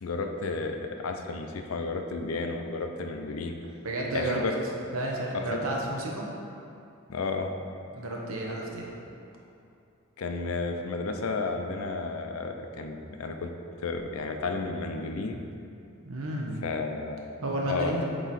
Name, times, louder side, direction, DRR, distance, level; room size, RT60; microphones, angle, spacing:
voice 1, 0.0-3.6 4.1-4.5 5.3-5.6 7.1-7.5 10.2-13.5 13.8-15.4 16.6-18.0, left 3 dB, 80° left, 4 dB, 0.5 m, -32 dB
voice 2, 3.8-4.6 4.9-6.3 7.9-8.9 16.0-16.6 17.4-18.0, right 1 dB, 85° right, -1 dB, 0.9 m, -31 dB
7.7 x 3.0 x 4.1 m, 2.6 s
head